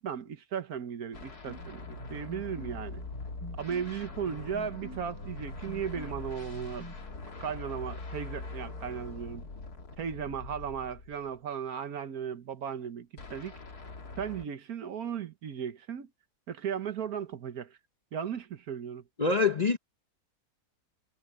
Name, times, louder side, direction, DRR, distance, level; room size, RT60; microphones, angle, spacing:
voice 1, 0.0-3.0 3.6-6.9 7.4-9.5 10.0-13.6 14.2-16.1 16.5-17.8 18.1-19.0, right 7 dB, 65° right, 1.5 m, -36 dB
sound 1, 1.1-11.4 13.2-14.5, left 3 dB, 70° left, 2.9 m, -43 dB
sound 2, 1.4-7.1, right 2 dB, 85° right, 6.2 m, -47 dB
voice 2, 19.2-19.8, left 4 dB, 35° left, 0.8 m, -25 dB
omnidirectional pair, 1.7 m